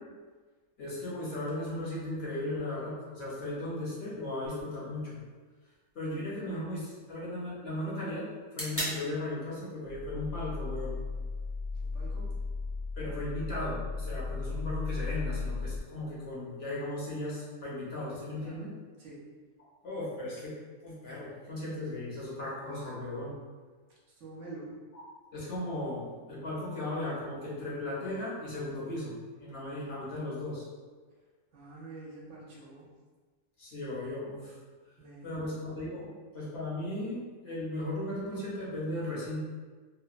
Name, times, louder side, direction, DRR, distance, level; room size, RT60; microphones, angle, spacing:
voice 1, 0.8-5.2 5.9-8.2 8.5-11.0 13.0-18.7 19.8-20.5 20.8-23.4 24.9-25.0 25.3-26.0 26.3-29.1 29.4-30.6 33.6-34.6 35.2-39.4, left 1 dB, 55° left, -7 dB, 0.9 m, -36 dB
sound 1, 4.5-12.4, equal, 15° left, 0.6 m, -45 dB
sound 2, 9.8-15.8, left 3 dB, 80° left, 1.2 m, -36 dB
voice 2, 11.7-12.4 18.4-18.6 19.0-19.3 24.1-24.8 31.5-32.9 35.0-35.5, right 2 dB, 65° right, -5 dB, 1.0 m, -47 dB
2.9 x 2.1 x 2.4 m, 1.4 s
omnidirectional pair, 1.4 m